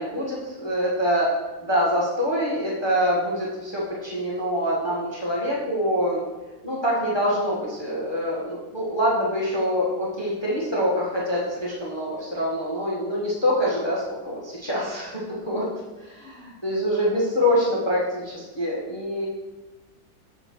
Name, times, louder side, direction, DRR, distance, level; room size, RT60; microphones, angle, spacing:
voice 1, 0.0-1.3 1.6-6.2 6.6-15.7 16.0-19.3, equal, 15° left, -6 dB, 1.3 m, -25 dB
8.1 x 3.7 x 6.0 m, 1.2 s
omnidirectional pair, 1.8 m